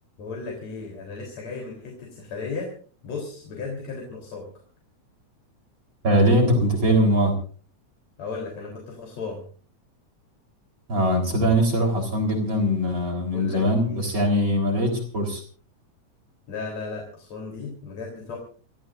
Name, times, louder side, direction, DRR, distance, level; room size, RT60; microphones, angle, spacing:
voice 1, 0.2-2.7 3.0-4.5 8.2-9.4 13.3-14.0 16.5-18.4, left 4 dB, 60° left, -1 dB, 4.8 m, -35 dB
voice 2, 6.0-7.3 10.9-15.4, equal, 40° right, -1 dB, 4.6 m, -21 dB
28.0 x 16.0 x 2.6 m, 0.41 s
omnidirectional pair, 3.4 m